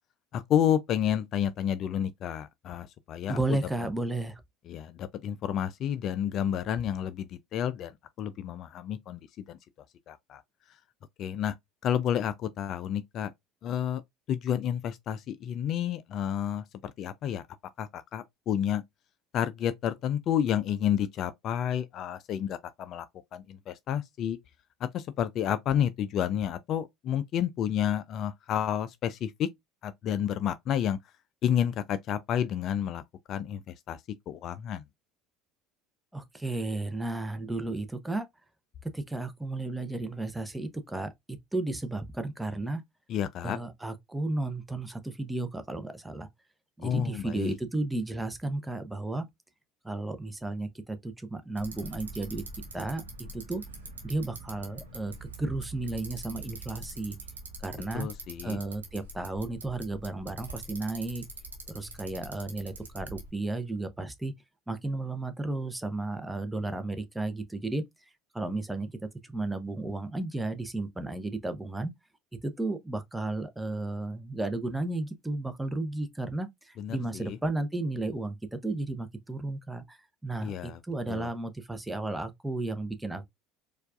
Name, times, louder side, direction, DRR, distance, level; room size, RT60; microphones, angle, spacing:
voice 1, 0.3-3.6 4.7-9.6 10.1-10.4 11.2-11.5 11.8-13.3 13.6-14.0 14.3-17.4 17.8-18.8 19.3-23.1 23.3-24.4 24.8-29.5 29.8-31.0 31.4-33.0 33.3-34.0 34.3-34.8 43.1-43.6 46.8-47.6 57.9-58.6 76.8-77.4 80.4-80.8 81.1-81.3, left 9 dB, 50° left, 0.3 m, -30 dB
voice 2, 3.3-4.4 36.1-38.3 38.9-42.8 43.4-46.3 46.8-49.2 49.8-52.4 52.7-53.0 53.3-53.6 54.0-57.2 57.6-58.1 58.4-61.2 61.7-64.3 64.7-67.8 68.3-68.9 69.2-71.9 72.4-83.3, right 2 dB, 10° right, 0.7 m, -33 dB
Bicycle, 51.6-63.3, right 3 dB, 85° right, 0.9 m, -43 dB
4.4 x 2.4 x 2.4 m
figure-of-eight pair, 65°, 0 cm